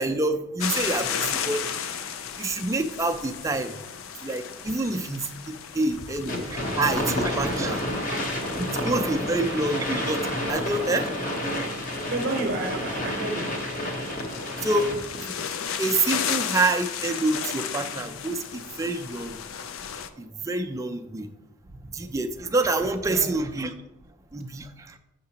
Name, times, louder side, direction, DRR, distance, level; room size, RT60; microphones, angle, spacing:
voice 1, 0.0-1.6 2.4-3.7 4.2-7.8 8.1-8.2 8.6-11.1 14.6-14.9 15.2-15.5 15.8-19.4 20.2-21.3 21.9-23.8 24.3-24.9, right 2 dB, 15° right, 0.3 m, -27 dB
sound 1, 0.6-20.1, left 8 dB, 65° left, 0.4 m, -35 dB
sound 2, 6.3-15.2, left 1 dB, 40° left, 0.9 m, -30 dB
voice 2, 12.1-13.6 21.7-21.9 23.1-23.4, right 2 dB, 55° right, 0.7 m, -31 dB
7.1 x 5.8 x 2.8 m
head